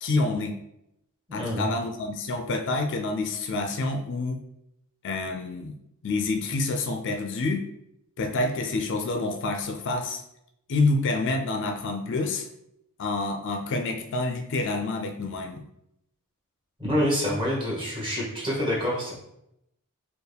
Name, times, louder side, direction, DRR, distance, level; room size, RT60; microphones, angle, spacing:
voice 1, 0.0-0.6 1.3-4.4 5.0-5.7 6.0-7.7 8.2-10.2 10.7-12.5 13.0-15.6, left 3 dB, 55° left, 5 dB, 0.4 m, -28 dB
voice 2, 1.3-1.7 16.8-19.1, equal, 25° right, -5 dB, 1.4 m, -27 dB
4.5 x 2.2 x 3.4 m, 0.81 s
head